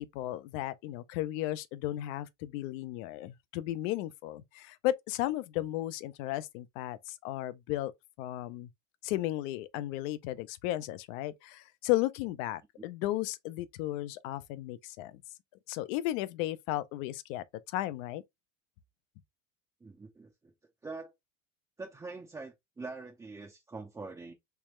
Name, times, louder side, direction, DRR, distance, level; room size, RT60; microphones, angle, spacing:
voice 1, 0.0-7.9 8.2-8.7 9.0-15.2 15.7-18.2, left 15 dB, 65° left, 0.6 m, -34 dB
voice 2, 19.8-20.5 20.8-21.1 21.8-24.3, right 3 dB, 10° right, 0.5 m, -44 dB
3.4 x 3.2 x 3.0 m
supercardioid pair, 140°, 42 cm